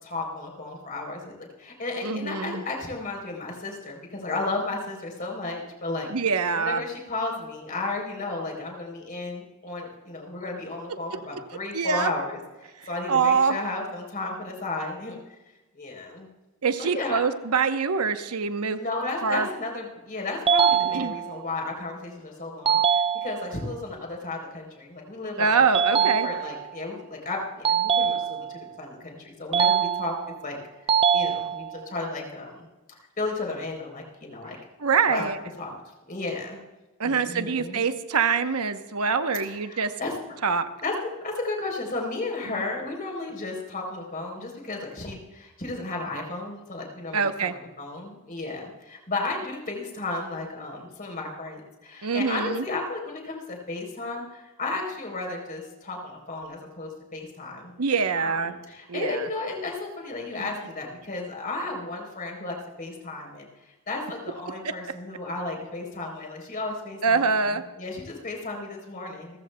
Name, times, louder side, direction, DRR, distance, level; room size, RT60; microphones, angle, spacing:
voice 1, 0.0-6.1 6.5-12.4 12.9-15.2 15.7-16.3 16.8-17.2 18.7-25.6 25.9-30.6 31.1-32.7 33.2-34.6 35.1-35.7 36.1-36.6 37.0-37.8 39.4-40.1 40.8-40.9 41.2-57.7 58.2-63.5 63.9-67.3 67.8-69.4, left 2 dB, 40° left, 0 dB, 3.7 m, -34 dB
voice 2, 2.0-2.6 6.1-6.8 11.7-12.1 13.1-13.6 16.6-18.9 19.2-19.5 20.9-21.1 25.4-26.3 34.8-35.4 37.0-39.9 40.4-40.7 47.1-47.5 52.0-52.7 57.8-58.5 58.9-59.3 60.4-60.5 67.0-67.6, right 5 dB, 85° right, 9 dB, 0.9 m, -24 dB
sound 1, 20.5-21.5 22.7-23.7 25.7-26.8 27.6-28.7 29.5-30.4 30.9-31.9, right 7 dB, 25° right, 0.4 m, -24 dB
28.5 x 14.5 x 2.2 m, 1.1 s
head